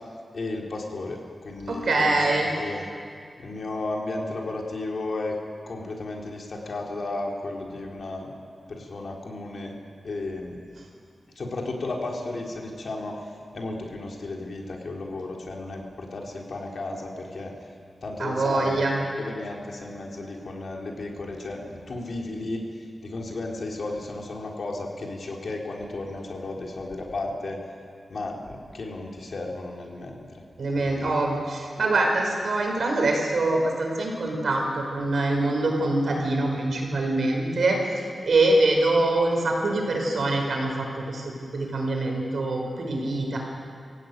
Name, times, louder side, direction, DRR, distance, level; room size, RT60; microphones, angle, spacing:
voice 1, 0.3-2.8 3.4-5.3 5.7-8.3 8.7-9.7 10.0-10.5 11.4-13.1 13.5-17.5 18.0-18.9 19.2-27.6 28.1-30.2 30.8-31.3, left 2 dB, 65° left, -1 dB, 3.8 m, -34 dB
voice 2, 1.7-2.5 18.2-19.0 30.6-43.4, right 2 dB, 75° right, 0 dB, 5.2 m, -24 dB
25.5 x 16.0 x 9.3 m, 2.3 s
wide cardioid pair, 110°, 0 cm